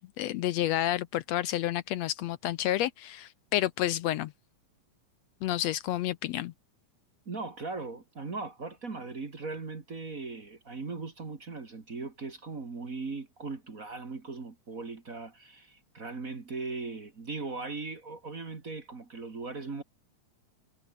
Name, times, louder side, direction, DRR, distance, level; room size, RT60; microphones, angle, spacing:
voice 1, 0.2-4.3 5.4-6.5, left 13 dB, 75° left, 1.8 m, -30 dB
voice 2, 7.3-19.8, right 3 dB, 30° right, 2.1 m, -39 dB
omnidirectional pair, 3.3 m